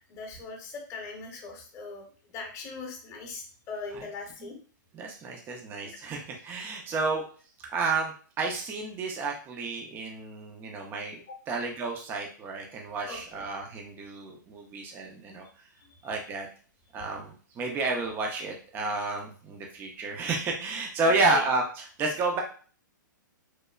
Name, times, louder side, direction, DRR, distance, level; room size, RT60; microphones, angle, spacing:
voice 1, 0.1-2.0 2.3-4.6 5.8-6.0 11.3-11.4 13.1-13.2 21.0-21.4, left 4 dB, 25° left, 1 dB, 0.7 m, -39 dB
voice 2, 4.9-7.2 7.7-11.2 11.5-15.4 16.0-16.5 16.9-22.4, right 3 dB, 20° right, 1 dB, 0.4 m, -31 dB
3.0 x 2.0 x 2.3 m, 0.41 s
hypercardioid pair, 135°, 11 cm